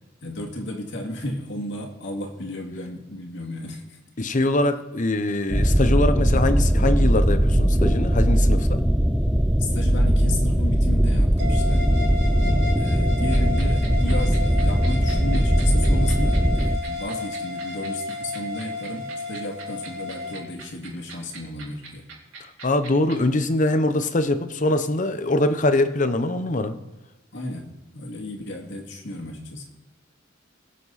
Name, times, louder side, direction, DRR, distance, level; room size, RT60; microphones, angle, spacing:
voice 1, 0.2-4.0 4.4-4.5 9.6-11.9 12.8-22.0 27.3-29.6, left 1 dB, 60° left, 0 dB, 2.3 m, -33 dB
voice 2, 4.2-8.8 12.3-12.6 22.6-26.8, left 2 dB, 40° left, 10 dB, 0.8 m, -23 dB
sound 1, 5.5-16.8, equal, 5° right, 0.5 m, -20 dB
sound 2, 11.4-20.4, left 3 dB, 55° right, 1.5 m, -33 dB
sound 3, 13.3-23.1, right 6 dB, 80° right, 4.2 m, -41 dB
22.0 x 7.5 x 4.1 m, 1.0 s
head